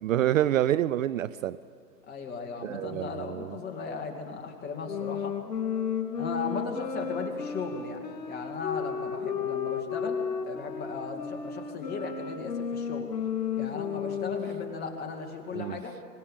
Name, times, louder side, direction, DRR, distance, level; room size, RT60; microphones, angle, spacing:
voice 1, 0.0-1.6 2.6-3.6 15.5-15.8, right 12 dB, 55° right, 17 dB, 0.5 m, -27 dB
voice 2, 2.1-5.4 6.2-13.1 13.6-16.0, left 4 dB, 20° left, 3 dB, 2.2 m, -37 dB
sound 1, 4.8-14.8, left 7 dB, 75° left, 2.8 m, -33 dB
25.0 x 19.0 x 7.4 m, 2.3 s
hypercardioid pair, 135°, 49 cm